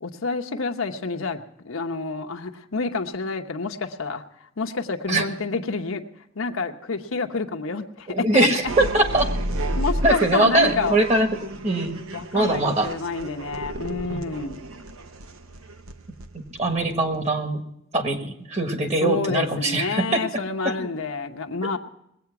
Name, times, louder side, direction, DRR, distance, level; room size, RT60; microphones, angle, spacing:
voice 1, 0.0-4.2 4.6-6.0 6.3-8.5 9.8-11.0 12.1-14.6 19.0-21.8, left 4 dB, 80° left, 5 dB, 0.9 m, -28 dB
voice 2, 8.1-9.3 10.0-11.3 11.6-12.0 12.3-12.9 13.9-14.2 16.6-17.6 17.9-20.2, right 2 dB, 35° right, 5 dB, 1.5 m, -22 dB
sound 1, 8.6-17.2, right 1 dB, 85° right, 0.9 m, -32 dB
20.5 x 8.6 x 5.9 m, 0.78 s
head